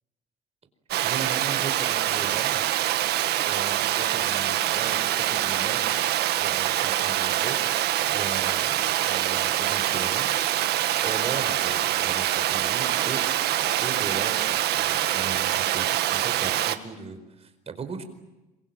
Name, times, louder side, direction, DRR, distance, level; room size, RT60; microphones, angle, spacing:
Water, 0.9-16.8, right 13 dB, 75° right, 1.7 m, -25 dB
voice 1, 1.0-2.6 3.4-6.1 6.4-13.2 13.8-18.0, right 5 dB, 40° right, 9 dB, 4.7 m, -38 dB
26.5 x 24.0 x 8.9 m, 1.0 s
cardioid pair, 110°, 17 cm